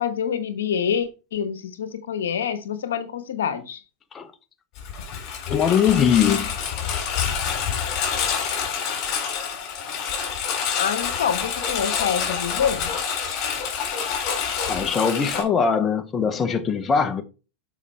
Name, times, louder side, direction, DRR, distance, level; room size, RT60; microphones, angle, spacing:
voice 1, 0.0-3.8 10.7-12.9, left 8 dB, 80° left, 1.1 m, -26 dB
Engine, 4.8-15.4, left 7 dB, 45° left, 3.7 m, -27 dB
voice 2, 5.5-6.5 14.7-17.2, left 7 dB, 25° left, 1.0 m, -21 dB
7.3 x 5.2 x 4.3 m
hypercardioid pair, 105°, 0 cm